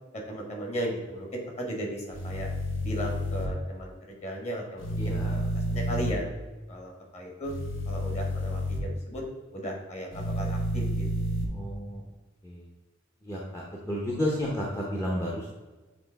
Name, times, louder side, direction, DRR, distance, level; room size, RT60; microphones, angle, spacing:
voice 1, 0.3-2.5 2.8-5.4 5.7-6.3 6.7-7.5 7.9-9.2 9.5-11.0, equal, 35° left, 0 dB, 1.5 m, -36 dB
sound 1, 2.1-3.5 4.8-6.1 7.5-8.8 10.1-11.4, equal, 75° left, 0.9 m, -30 dB
voice 2, 5.0-5.3 11.5-12.0 12.4-12.7 13.2-15.5, equal, 15° left, -4 dB, 0.8 m, -32 dB
7.7 x 3.2 x 4.6 m, 1.2 s
head